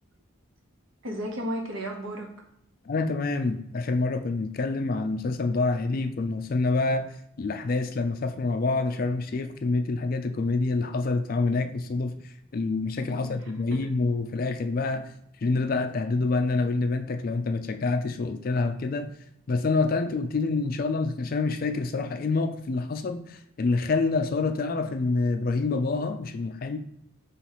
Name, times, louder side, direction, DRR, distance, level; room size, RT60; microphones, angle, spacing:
voice 1, 1.0-2.3 13.1-14.0, equal, 70° right, 2 dB, 0.9 m, -34 dB
voice 2, 2.9-7.1 7.4-12.1 12.5-15.1 15.4-19.1 19.5-26.8, left 3 dB, 40° left, 8 dB, 0.3 m, -27 dB
5.6 x 3.1 x 3.0 m, 0.75 s
head